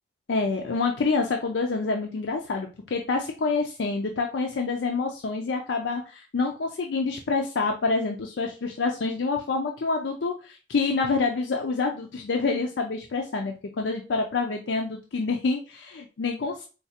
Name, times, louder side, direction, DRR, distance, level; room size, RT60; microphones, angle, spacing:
voice 1, 0.3-16.7, left 4 dB, 85° left, 2 dB, 0.5 m, -27 dB
4.5 x 2.3 x 2.8 m, 0.33 s
head